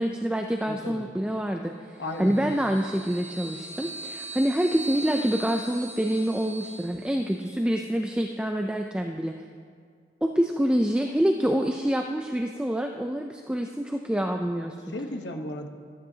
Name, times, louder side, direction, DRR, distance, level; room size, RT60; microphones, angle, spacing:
voice 1, 0.0-9.3 10.2-14.7, equal, 5° right, 3 dB, 0.3 m, -26 dB
voice 2, 0.7-1.1 2.0-2.5 14.9-15.7, left 1 dB, 75° left, 4 dB, 1.0 m, -35 dB
sound 1, 2.0-7.5, right 2 dB, 30° right, 2.8 m, -40 dB
14.0 x 12.5 x 2.8 m, 2.2 s
head